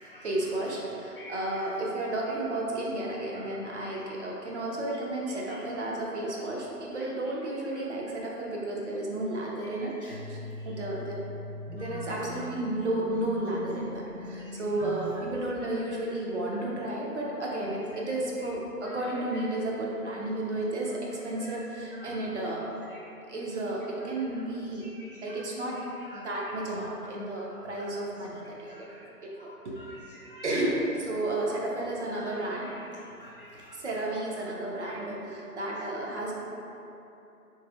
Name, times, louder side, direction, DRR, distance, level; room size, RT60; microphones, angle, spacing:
voice 1, 0.0-9.9 10.3-10.4 10.6-11.2 11.7-22.6 23.3-24.9 25.2-25.8 26.1-28.9 29.2-29.3 29.6-29.8 30.4-32.8 33.5-36.3, right 1 dB, 50° right, -4 dB, 0.6 m, -32 dB
sound 1, 10.1-15.2, left 1 dB, 70° right, 0.9 m, -41 dB
voice 2, 24.8-25.3 26.1-26.2 27.8-27.9 28.7-29.1 29.4-30.4 32.1-32.4 32.7-32.9 33.2-33.8 34.8-34.9, equal, 40° left, -8 dB, 0.5 m, -49 dB
3.4 x 3.1 x 2.3 m, 2.8 s
figure-of-eight pair, 145°, 46 cm